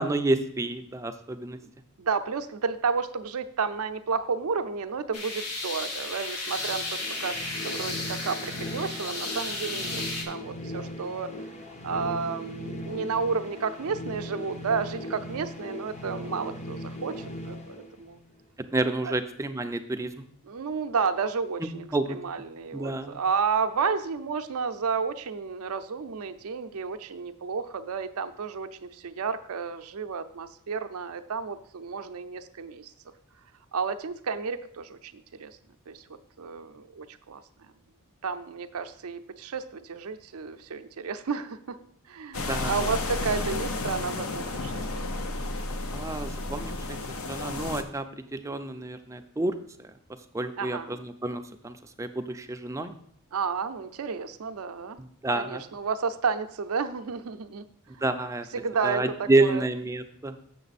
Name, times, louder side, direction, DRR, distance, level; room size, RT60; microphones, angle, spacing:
voice 1, 0.0-1.6 18.7-20.1 21.6-22.2 22.7-23.2 42.4-42.7 45.9-47.0 47.3-49.9 50.3-52.9 55.0-55.6 58.0-58.5 58.8-60.4, right 2 dB, 15° right, 7 dB, 0.4 m, -29 dB
voice 2, 2.0-11.3 11.8-18.2 19.0-19.1 20.5-32.9 33.7-35.6 35.9-36.0 36.4-37.4 38.2-41.8 42.1-45.0 50.6-51.0 53.3-55.0 55.3-57.6 57.9-58.0 58.5-59.6, right 5 dB, 70° right, 10 dB, 0.5 m, -31 dB
sound 1, 5.1-10.2, left 2 dB, 85° left, 1.4 m, -34 dB
sound 2, 6.5-18.4, left 1 dB, 30° left, 0.7 m, -39 dB
sound 3, 42.3-47.8, left 2 dB, 65° left, 0.7 m, -32 dB
6.9 x 6.8 x 4.1 m, 0.64 s
head